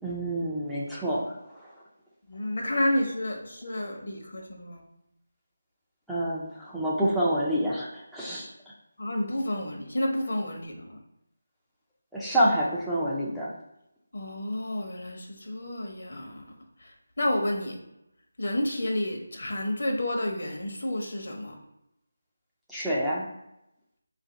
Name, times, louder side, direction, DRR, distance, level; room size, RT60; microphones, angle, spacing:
voice 1, 0.0-1.7 6.1-8.5 12.1-13.5 22.7-23.3, right 1 dB, ahead, -9 dB, 0.4 m, -27 dB
voice 2, 2.3-4.8 9.0-11.0 14.1-16.4 16.8-17.8 18.4-21.6, left 1 dB, 65° left, 1 dB, 0.9 m, -30 dB
3.9 x 2.5 x 3.9 m, 0.86 s
figure-of-eight pair, 170°, 0 cm